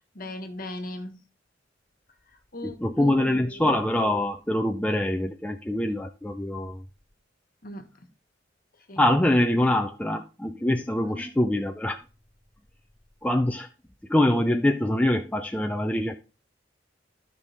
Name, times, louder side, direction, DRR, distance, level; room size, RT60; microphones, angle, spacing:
voice 1, 0.1-1.2 2.5-3.7 7.6-7.8 8.9-9.0 11.0-11.3, left 1 dB, 50° left, 7 dB, 1.4 m, -38 dB
voice 2, 2.6-6.8 9.0-12.0 13.2-13.7 14.1-16.2, left 1 dB, 10° left, 4 dB, 0.5 m, -24 dB
12.5 x 5.4 x 3.4 m, 0.32 s
head